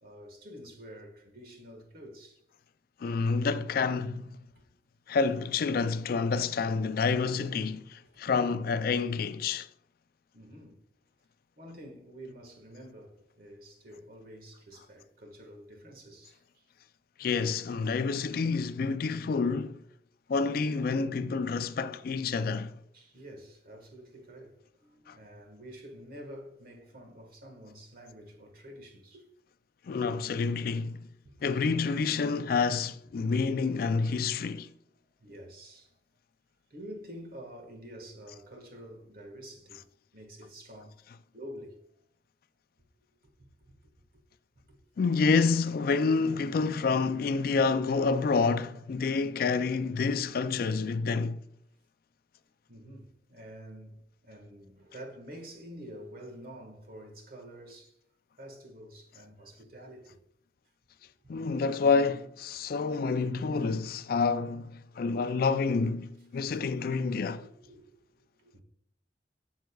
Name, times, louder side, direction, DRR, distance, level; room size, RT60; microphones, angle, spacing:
voice 1, 0.0-2.4 4.5-4.6 8.1-8.2 10.3-10.8 11.6-16.6 22.9-29.3 31.2-31.4 35.2-35.9 36.7-39.9 40.1-41.0 41.3-41.8 44.6-44.8 52.7-58.0 58.4-60.2 62.5-62.7 66.5-66.6 67.6-68.1 68.4-68.6, equal, 55° right, 1.6 m, -48 dB
voice 2, 3.0-4.4 5.1-9.7 17.2-19.8 20.3-22.7 25.1-25.2 29.9-31.1 31.4-34.7 45.0-51.4 61.3-67.5, left 4 dB, 55° left, 0.3 m, -28 dB
9.1 x 6.4 x 2.3 m
head